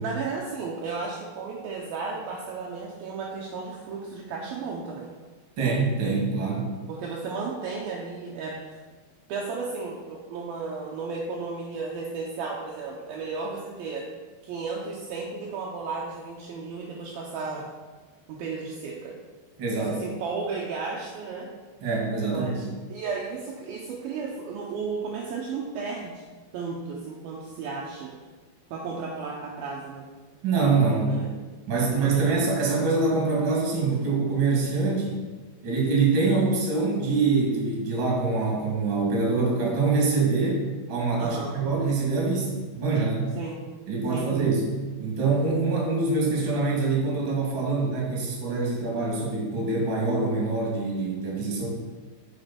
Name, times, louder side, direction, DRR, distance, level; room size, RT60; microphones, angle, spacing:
voice 1, 0.0-5.1 6.9-8.8 9.3-14.1 14.4-17.6 18.3-19.2 19.7-21.5 22.3-26.2 26.5-28.1 28.7-30.1 30.9-31.3 31.9-32.9 41.2-41.6 43.4-43.6 44.1-44.3, right 4 dB, 80° right, -2 dB, 2.2 m, -34 dB
voice 2, 5.6-6.7 19.6-20.0 21.8-22.5 30.4-31.1 31.7-35.2 35.6-40.6 40.9-43.3 43.9-44.7 45.0-51.7, right 3 dB, 35° right, -2 dB, 2.3 m, -25 dB
8.5 x 6.1 x 5.8 m, 1.4 s
omnidirectional pair, 5.3 m